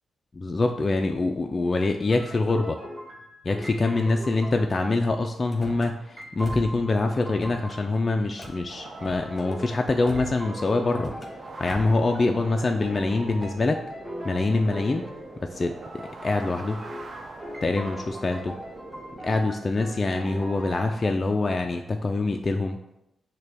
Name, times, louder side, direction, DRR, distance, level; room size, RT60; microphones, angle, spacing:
voice 1, 0.3-2.8 3.4-11.1 11.6-13.8 14.2-15.1 15.4-16.8 17.6-18.6 19.2-22.8, left 3 dB, 40° left, 4 dB, 0.3 m, -25 dB
sound 1, 2.0-4.6 5.5-8.0 8.4-15.3 15.8-21.1, equal, 10° right, 1.3 m, -41 dB
Car / Slam, 5.4-5.9 6.4-6.8 7.2-7.8 8.4-8.6 9.0-9.5 10.1-10.5 10.9-11.3 11.7-12.0, left 1 dB, 15° left, 1.4 m, -40 dB
sound 2, 8.7-19.4, right 3 dB, 55° right, 0.5 m, -43 dB
6.4 x 2.2 x 3.4 m, 0.87 s
supercardioid pair, 50°, 0 cm